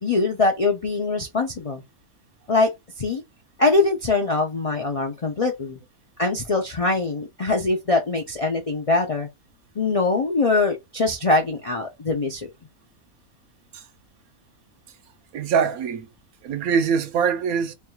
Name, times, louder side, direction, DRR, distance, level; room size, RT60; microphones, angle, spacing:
voice 1, 0.0-1.8 2.5-3.2 3.6-5.8 6.2-9.3 9.8-12.5, left 3 dB, 55° left, 0.4 m, -23 dB
voice 2, 15.3-16.1 16.4-17.7, right 6 dB, 85° right, 1.2 m, -23 dB
3.4 x 2.3 x 4.3 m
omnidirectional pair, 1.5 m